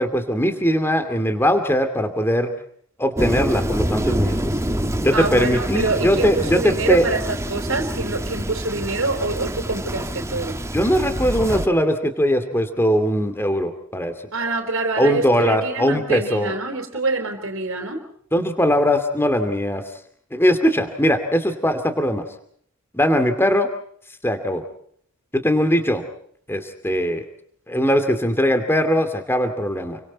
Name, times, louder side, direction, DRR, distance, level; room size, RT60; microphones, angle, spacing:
voice 1, 0.0-2.5 3.0-4.4 5.0-7.1 10.7-14.1 15.0-16.5 18.3-19.8 20.3-22.2 22.9-23.7 24.2-24.6 25.3-26.0 26.5-27.2 27.7-30.0, equal, 10° left, 8 dB, 2.5 m, -20 dB
Thunder, 3.2-11.7, right 1 dB, 15° right, 1.2 m, -26 dB
voice 2, 5.1-10.6 14.3-18.0, right 3 dB, 65° right, 4 dB, 4.0 m, -25 dB
30.0 x 24.5 x 4.2 m, 0.62 s
head